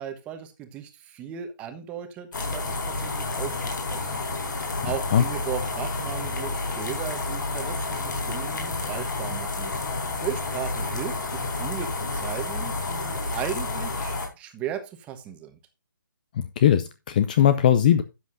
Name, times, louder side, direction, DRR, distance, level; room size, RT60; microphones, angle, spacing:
voice 1, 0.0-4.2 4.8-9.7 10.2-15.6, right 9 dB, 10° right, 7 dB, 1.1 m, -36 dB
sound 1, 2.3-14.3, left 3 dB, 65° left, 5.0 m, -30 dB
voice 2, 16.4-18.0, left 10 dB, 25° left, 12 dB, 0.5 m, -19 dB
12.5 x 8.1 x 2.6 m, 0.27 s
hypercardioid pair, 160°, 11 cm